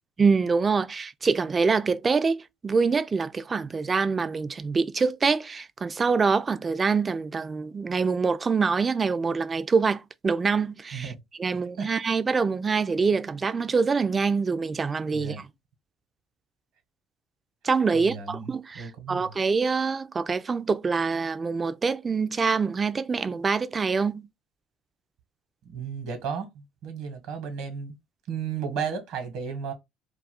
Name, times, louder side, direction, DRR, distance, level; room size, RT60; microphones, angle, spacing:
voice 1, 0.2-11.1 11.4-15.5 17.6-24.3, right 5 dB, 30° right, 0.3 m, -25 dB
voice 2, 15.1-15.4 17.9-19.2 25.6-27.9 28.3-29.7, right 6 dB, 75° right, 1.0 m, -34 dB
2.4 x 2.3 x 3.5 m
hypercardioid pair, 70°, 0 cm